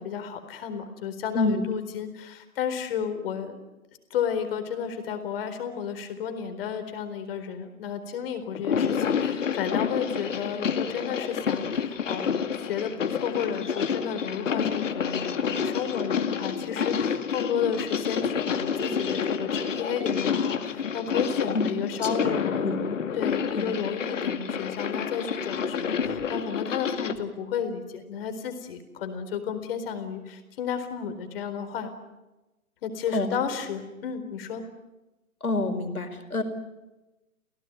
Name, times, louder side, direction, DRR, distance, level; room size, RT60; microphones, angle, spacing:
voice 1, 0.0-3.6 4.1-22.7 23.2-31.9 32.8-34.6, left 7 dB, 40° left, 8 dB, 4.2 m, -32 dB
sound 1, 8.5-27.2, left 6 dB, 60° left, 2.4 m, -29 dB
voice 2, 22.0-22.3 22.6-22.8 23.6-23.7 33.1-33.3 35.4-36.4, left 2 dB, 80° left, 6 dB, 4.8 m, -27 dB
28.5 x 17.5 x 9.6 m, 1.0 s
figure-of-eight pair, 135°, 43 cm